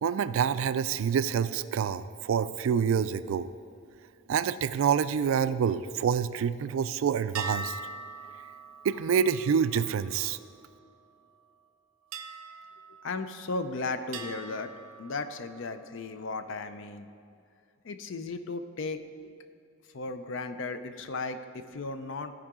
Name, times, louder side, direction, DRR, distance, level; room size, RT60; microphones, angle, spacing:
voice 1, 0.0-3.5 4.3-7.8 8.8-10.4, right 7 dB, 70° right, 14 dB, 0.3 m, -27 dB
sound 1, 7.3-11.0 12.1-13.7 14.1-15.8, right 4 dB, 85° right, 0.7 m, -42 dB
voice 2, 13.0-14.7 15.0-17.1 17.8-19.3 19.9-22.3, left 3 dB, 60° left, 10 dB, 0.5 m, -35 dB
14.5 x 4.8 x 3.6 m, 2.4 s
head